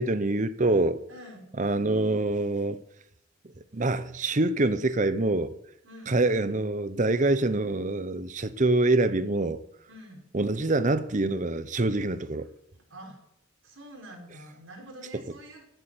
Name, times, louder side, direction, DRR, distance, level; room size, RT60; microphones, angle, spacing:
voice 1, 0.0-1.0 1.6-2.8 3.7-5.5 6.1-9.6 10.3-12.5, right 2 dB, 40° right, 0.8 m, -25 dB
voice 2, 1.1-1.5 5.8-6.3 9.9-10.3 12.9-13.2 13.6-15.6, right 1 dB, 85° right, 5.5 m, -46 dB
15.5 x 9.2 x 7.9 m
head